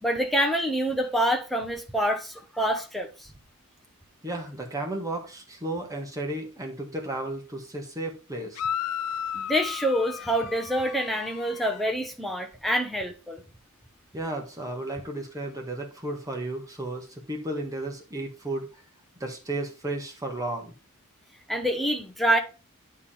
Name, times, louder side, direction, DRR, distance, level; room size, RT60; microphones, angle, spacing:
voice 1, 0.0-3.3 9.3-13.4 21.5-22.4, equal, ahead, 1.0 m, -26 dB
voice 2, 4.2-8.6 14.1-18.7 19.2-20.7, right 1 dB, 15° right, 1.7 m, -33 dB
sound 1, 8.5-11.8, left 9 dB, 80° left, 0.4 m, -34 dB
9.6 x 3.6 x 4.3 m
head